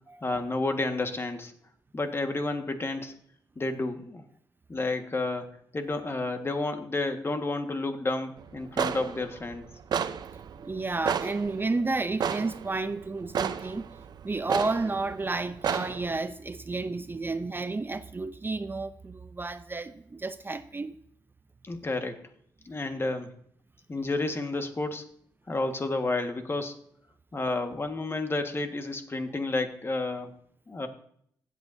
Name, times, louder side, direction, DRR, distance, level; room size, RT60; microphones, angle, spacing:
voice 1, 0.2-1.5 1.9-3.1 3.5-4.2 4.7-5.5 5.7-9.7 21.6-22.2 22.6-23.3 23.9-25.0 25.5-26.7 27.3-30.3 30.7-30.9, left 2 dB, 30° left, 1.5 m, -30 dB
sound 1, 8.4-16.2, right 7 dB, 65° right, 0.6 m, -33 dB
voice 2, 10.6-13.8 14.2-21.0, right 3 dB, 30° right, 0.6 m, -31 dB
15.5 x 8.2 x 2.7 m
cardioid pair, 60°, 8 cm